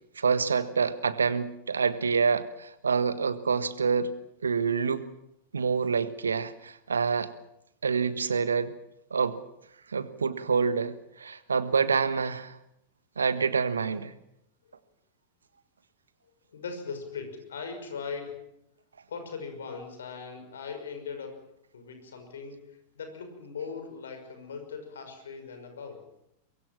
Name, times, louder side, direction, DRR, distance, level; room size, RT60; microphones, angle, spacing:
voice 1, 0.1-4.1 4.4-5.1 5.5-7.3 7.8-8.8 9.1-9.4 9.9-12.6 13.2-14.1, right 5 dB, 75° right, 14 dB, 1.5 m, -27 dB
voice 2, 16.5-18.5 19.1-21.5 21.7-26.0, left 5 dB, 65° left, 7 dB, 5.9 m, -39 dB
24.0 x 22.0 x 7.4 m, 0.81 s
figure-of-eight pair, 90°, 0 cm